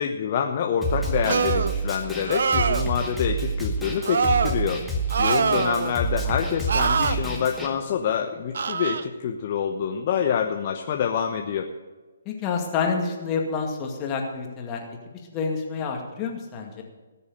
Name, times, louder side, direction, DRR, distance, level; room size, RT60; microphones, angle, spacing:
voice 1, 0.0-4.8 5.2-11.7, left 7 dB, 40° left, 3 dB, 1.0 m, -26 dB
Snare drum, 0.8-7.7, right 2 dB, ahead, 1.8 m, -28 dB
sound 1, 1.3-1.7 2.2-2.9 4.0-4.6 5.1-6.0 6.7-7.2 8.5-9.0, right 5 dB, 55° right, 0.7 m, -23 dB
voice 2, 5.2-5.6 12.3-14.8 15.3-16.8, left 5 dB, 25° left, 1 dB, 2.1 m, -28 dB
19.0 x 7.0 x 6.7 m, 1.3 s
figure-of-eight pair, 135°, 0 cm